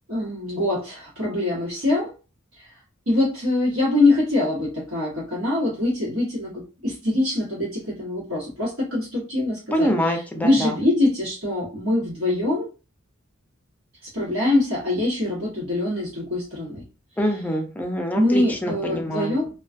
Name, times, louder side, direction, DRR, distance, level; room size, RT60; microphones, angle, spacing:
voice 1, 0.1-2.1 2.6-2.7 3.1-9.9 10.4-12.7 14.1-16.8 18.1-19.5, left 2 dB, 70° right, -7 dB, 1.2 m, -23 dB
voice 2, 9.7-10.8 17.2-19.4, equal, 10° left, 3 dB, 0.3 m, -25 dB
2.3 x 2.3 x 2.4 m, 0.33 s
head